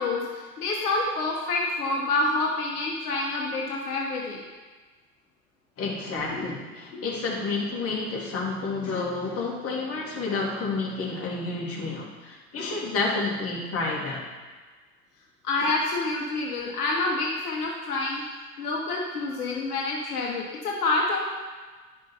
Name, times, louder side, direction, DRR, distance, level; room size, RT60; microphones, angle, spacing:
voice 1, 0.0-4.4 6.3-6.5 15.4-18.2 18.6-21.2, left 2 dB, 70° left, -2 dB, 1.5 m, -27 dB
voice 2, 5.8-14.2, left 3 dB, 30° left, -3 dB, 2.5 m, -30 dB
10.5 x 6.2 x 4.4 m, 1.4 s
figure-of-eight pair, 80°, 47 cm